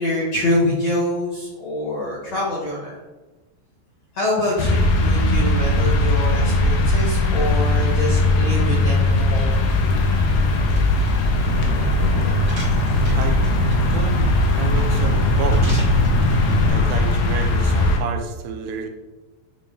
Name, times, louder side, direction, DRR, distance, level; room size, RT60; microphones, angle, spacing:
voice 1, 0.0-3.0 4.1-9.4, left 1 dB, 55° left, -6 dB, 2.0 m, -25 dB
sound 1, 4.6-18.0, left 2 dB, 75° left, 2.6 m, -19 dB
Car / Engine, 9.5-16.7, equal, 30° right, 1.0 m, -24 dB
voice 2, 13.9-14.3 14.6-15.8 16.7-18.9, right 6 dB, 80° right, 5 dB, 2.6 m, -30 dB
9.5 x 3.2 x 3.8 m, 1.1 s
omnidirectional pair, 4.9 m